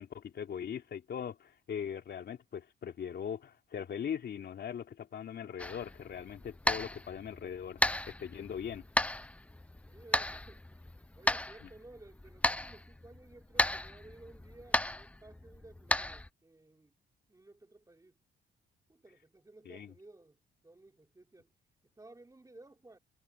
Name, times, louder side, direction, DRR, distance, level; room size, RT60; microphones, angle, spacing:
voice 1, 0.0-8.9 11.6-11.7 19.6-19.9, left 8 dB, 55° left, 3.0 m, -40 dB
sound 1, 5.6-16.3, left 1 dB, 5° left, 0.4 m, -35 dB
voice 2, 9.8-10.8 11.2-16.9 17.3-18.2 18.9-20.4 20.6-21.5 22.0-23.0, right 2 dB, 15° right, 5.0 m, -56 dB
cardioid pair, 90°, 20 cm